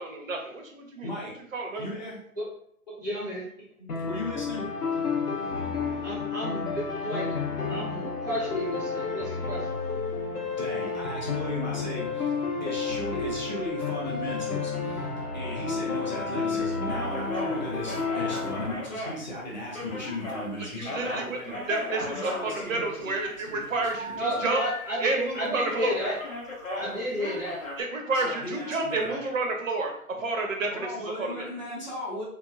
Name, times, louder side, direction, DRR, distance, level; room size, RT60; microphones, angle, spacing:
voice 1, 0.0-1.1 1.5-1.8 20.6-21.4 21.7-24.6 25.0-26.0 27.8-29.9 30.2-30.9 31.2-31.5, right 3 dB, 60° right, 2 dB, 0.7 m, -30 dB
voice 2, 1.0-1.3 1.8-2.2 2.9-3.0 3.6-4.6 10.6-15.1 15.3-24.4 28.1-29.3 30.7-32.2, left 1 dB, 30° left, -6 dB, 0.6 m, -37 dB
voice 3, 3.0-3.4 6.0-7.4 7.7-9.7 24.2-26.2 26.7-27.6, equal, 15° right, -10 dB, 0.6 m, -32 dB
sound 1, 3.9-18.7, left 4 dB, 90° left, 0.8 m, -31 dB
sound 2, 16.9-20.5 20.8-23.3 24.0-24.8 25.0-25.3 25.6-27.8, left 1 dB, 60° left, 0.9 m, -36 dB
2.9 x 2.2 x 2.3 m, 0.67 s
figure-of-eight pair, 150°, 44 cm